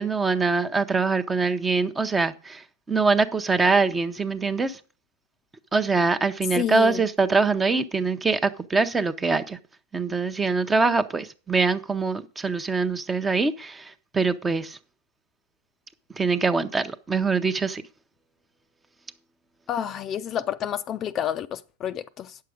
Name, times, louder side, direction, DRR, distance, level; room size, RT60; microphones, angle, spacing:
voice 1, 0.0-4.8 5.7-9.6 9.9-14.8 16.2-17.8, right 4 dB, 15° right, 0.8 m, -23 dB
voice 2, 6.6-7.0 19.7-22.4, left 10 dB, 35° left, 0.5 m, -29 dB
9.3 x 6.7 x 5.0 m
hypercardioid pair, 110°, 0 cm